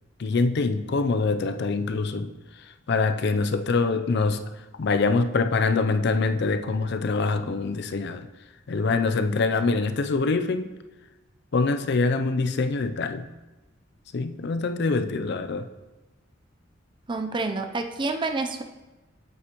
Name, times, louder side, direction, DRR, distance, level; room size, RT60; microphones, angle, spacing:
voice 1, 0.2-4.4 4.8-8.3 8.7-10.7 11.5-13.3 14.1-15.7, left 3 dB, 55° left, 9 dB, 0.5 m, -24 dB
voice 2, 17.1-18.6, right 3 dB, 25° right, 6 dB, 0.4 m, -28 dB
8.1 x 7.7 x 3.0 m, 1.1 s
head